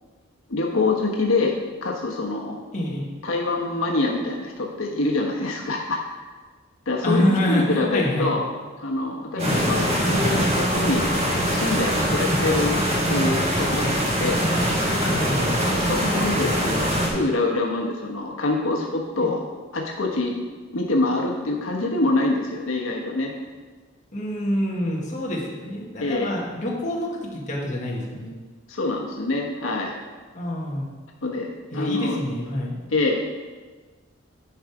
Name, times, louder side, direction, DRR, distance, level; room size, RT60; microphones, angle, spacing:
voice 1, 0.5-1.6 1.8-2.6 3.2-6.3 6.9-8.4 8.8-11.1 11.5-14.5 15.9-20.4 20.7-23.3 26.0-26.3 28.7-30.0 31.2-32.2 32.9-33.2, left 2 dB, 90° left, 0 dB, 1.1 m, -25 dB
voice 2, 2.7-3.1 7.0-8.3 9.3-9.7 12.3-12.4 15.0-15.6 19.2-19.3 24.1-28.3 30.3-30.9 31.7-32.8, left 1 dB, 40° left, -3 dB, 1.5 m, -26 dB
sound 1, 9.4-17.1, equal, 30° right, 1.6 m, -22 dB
10.0 x 4.8 x 4.8 m, 1.4 s
head